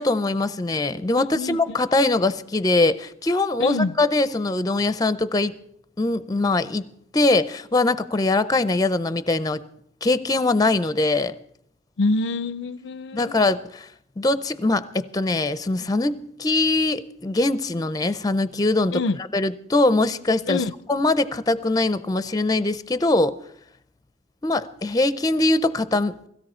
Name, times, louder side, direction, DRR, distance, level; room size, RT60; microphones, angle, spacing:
voice 1, 0.0-5.5 6.0-6.9 7.1-9.6 10.0-11.3 13.1-13.9 14.2-19.0 19.3-20.6 20.9-23.4 24.4-26.3, left 2 dB, 20° left, 14 dB, 0.5 m, -22 dB
voice 2, 1.2-1.8 3.6-4.0 12.0-13.3 18.9-19.2 20.5-20.7, left 3 dB, 75° left, 16 dB, 0.5 m, -26 dB
17.0 x 16.0 x 4.3 m, 0.71 s
head